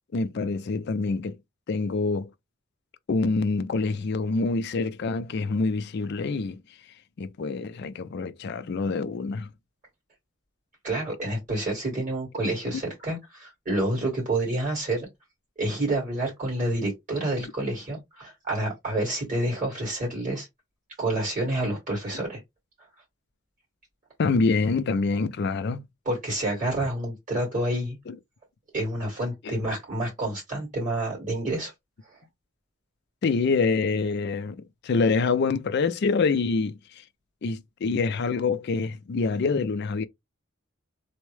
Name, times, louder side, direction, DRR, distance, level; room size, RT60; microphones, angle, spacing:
voice 1, 0.1-1.4 1.7-2.3 3.1-6.6 7.2-9.5 24.2-25.8 28.1-28.2 29.4-29.6 33.2-37.0 37.4-40.1, left 4 dB, 50° left, 0.4 m, -26 dB
voice 2, 10.8-15.1 15.6-20.5 21.0-22.4 26.1-28.0 28.7-31.7, right 1 dB, 40° right, 2.3 m, -28 dB
3.5 x 2.1 x 3.1 m
head